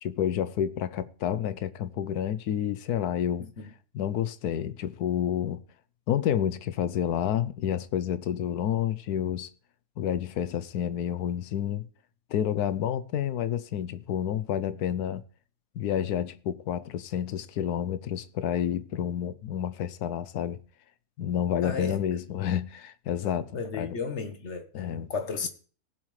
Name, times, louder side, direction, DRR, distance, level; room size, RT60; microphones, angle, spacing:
voice 1, 0.0-3.5 3.9-5.6 6.1-9.5 10.0-11.9 12.3-15.2 15.8-20.6 21.2-24.0 24.7-25.1, left 10 dB, 80° left, 1.2 m, -29 dB
voice 2, 21.6-22.4 23.2-25.5, left 5 dB, 50° left, 1.3 m, -35 dB
19.0 x 7.4 x 3.2 m
omnidirectional pair, 1.7 m